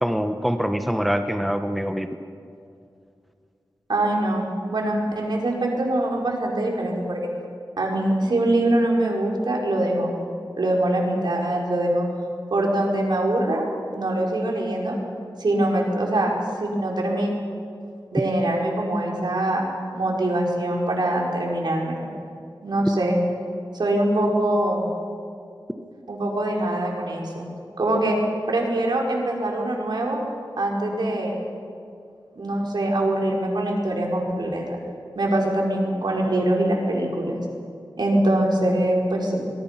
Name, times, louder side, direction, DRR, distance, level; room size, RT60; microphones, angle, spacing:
voice 1, 0.0-2.1, equal, ahead, 7 dB, 1.3 m, -24 dB
voice 2, 3.9-7.3 7.8-10.2 10.6-12.1 12.5-15.0 15.4-17.3 18.1-19.6 19.9-22.1 22.6-23.2 23.7-24.9 26.1-27.5 27.8-28.2 28.5-30.2 30.6-31.3 32.3-34.8 35.1-37.4 38.0-39.5, right 1 dB, 70° right, -1 dB, 4.7 m, -23 dB
25.0 x 23.0 x 5.9 m, 2.4 s
wide cardioid pair, 80°, 8 cm